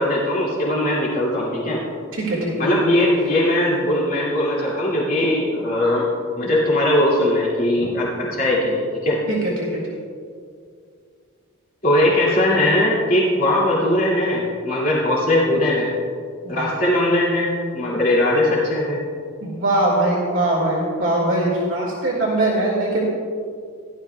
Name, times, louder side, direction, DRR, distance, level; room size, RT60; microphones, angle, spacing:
voice 1, 0.0-1.8 2.6-6.1 6.4-9.2 11.8-15.9 16.5-19.0, left 1 dB, 40° left, -6 dB, 2.4 m, -20 dB
voice 2, 2.1-2.6 7.8-7.9 9.3-9.8 16.4-16.7 19.4-23.1, right 1 dB, 65° right, -3 dB, 2.0 m, -21 dB
16.0 x 11.5 x 2.3 m, 2.2 s
head